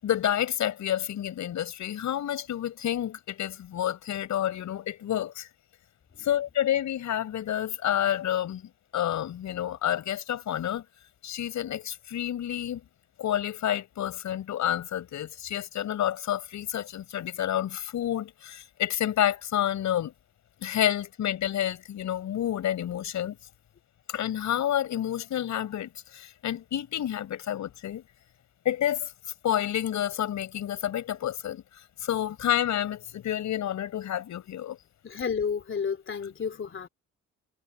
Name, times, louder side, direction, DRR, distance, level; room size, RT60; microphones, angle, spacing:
voice 1, 0.0-5.5 6.2-10.8 11.2-12.8 13.2-20.1 20.6-23.4 24.1-28.0 28.7-29.1 29.4-31.6 32.0-34.8, left 11 dB, 70° left, 5.5 m, -29 dB
voice 2, 35.0-36.9, left 6 dB, 40° left, 3.5 m, -31 dB
cardioid pair, 90°, 30 cm